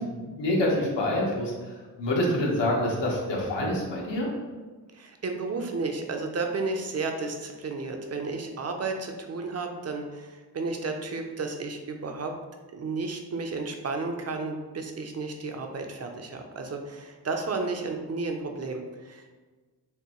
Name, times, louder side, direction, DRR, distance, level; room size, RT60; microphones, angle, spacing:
voice 1, 0.0-1.5 2.0-4.3, left 1 dB, 80° left, -3 dB, 1.3 m, -26 dB
voice 2, 4.9-12.3 12.7-19.3, right 3 dB, 35° right, 4 dB, 0.5 m, -32 dB
6.5 x 2.6 x 3.0 m, 1.4 s
wide cardioid pair, 170°, 42 cm